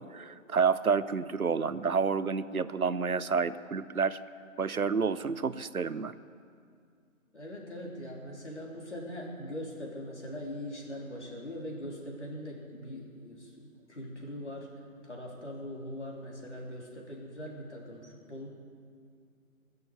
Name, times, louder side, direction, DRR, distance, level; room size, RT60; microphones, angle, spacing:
voice 1, 0.0-4.2 4.6-6.2, right 5 dB, 90° right, 14 dB, 0.8 m, -29 dB
voice 2, 7.3-14.7 15.0-18.5, equal, 55° left, -2 dB, 3.5 m, -41 dB
20.0 x 6.8 x 8.0 m, 2.3 s
figure-of-eight pair, 165°, 42 cm